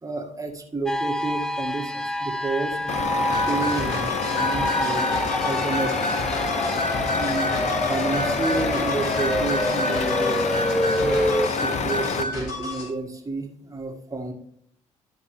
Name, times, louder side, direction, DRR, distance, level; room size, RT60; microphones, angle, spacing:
voice 1, 0.0-5.1 5.4-6.2 6.5-11.2 11.6-14.3, right 3 dB, 20° right, 1 dB, 1.9 m, -31 dB
sound 1, 0.9-11.5, equal, 5° left, 0.7 m, -27 dB
Truck, 2.9-12.2, left 5 dB, 45° left, 0.8 m, -28 dB
sound 2, 3.3-12.9, left 1 dB, 75° left, 3.8 m, -31 dB
13.0 x 5.1 x 3.3 m, 0.67 s
hypercardioid pair, 50°, 16 cm